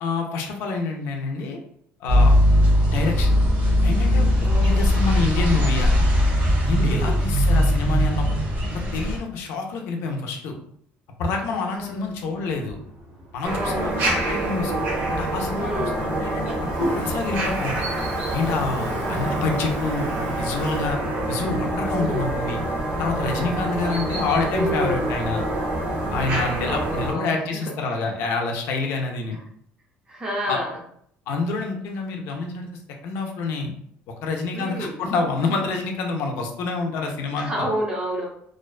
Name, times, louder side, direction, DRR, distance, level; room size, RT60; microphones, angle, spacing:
voice 1, 0.0-1.6 2.0-2.3 2.9-3.3 3.8-4.3 4.6-5.9 6.6-8.3 8.7-10.6 11.2-12.8 13.3-14.8 15.1-16.6 16.9-17.8 18.3-21.0 21.3-22.6 23.0-25.4 26.1-29.4 30.5-30.6 31.3-32.7 33.0-33.7 34.2-37.7, left 3 dB, 65° left, 2 dB, 0.4 m, -27 dB
sound 1, 2.1-9.2, equal, 35° right, 0.9 m, -19 dB
voice 2, 4.4-5.0 6.8-7.2 11.4-12.1 13.4-14.3 15.6-16.0 18.8-19.4 21.9-22.4 23.6-24.2 24.5-25.1 26.7-27.7 29.3-29.4 30.1-30.8 34.5-35.0 37.3-38.3, equal, 20° right, -3 dB, 0.6 m, -31 dB
Toilet flush, 11.8-23.3, equal, 80° right, 1.0 m, -37 dB
sound 2, 13.4-27.1, right 1 dB, 60° right, 0.7 m, -27 dB
2.4 x 2.2 x 2.3 m, 0.68 s
cardioid pair, 165°, 4 cm